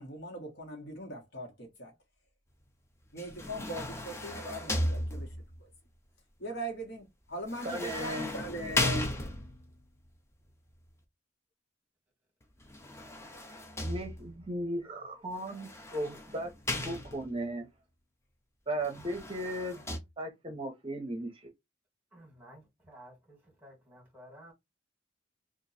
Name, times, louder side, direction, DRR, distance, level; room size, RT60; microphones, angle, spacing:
voice 1, 0.0-1.9 3.1-5.7 6.4-9.1, right 1 dB, 60° left, 1.3 m, -40 dB
sound 1, 3.2-5.6 7.5-9.7 12.6-14.5 15.5-17.5 18.8-20.0, left 1 dB, 15° left, 0.6 m, -36 dB
voice 2, 7.6-8.3 13.8-17.7 18.7-19.8 20.2-21.5, right 1 dB, 30° right, 0.7 m, -36 dB
voice 3, 22.1-24.5, equal, 10° right, 1.8 m, -54 dB
2.9 x 2.5 x 4.1 m
head